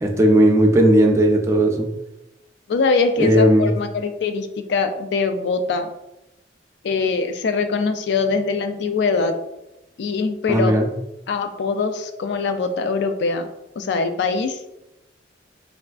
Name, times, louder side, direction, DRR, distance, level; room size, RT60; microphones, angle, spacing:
voice 1, 0.0-1.9 3.2-3.7 10.5-10.9, right 1 dB, 15° right, 1 dB, 0.4 m, -16 dB
voice 2, 2.7-5.9 6.8-9.4 10.0-10.8 11.3-13.5 13.8-14.6, left 4 dB, 65° left, 8 dB, 0.3 m, -22 dB
3.4 x 2.4 x 2.3 m, 0.92 s
head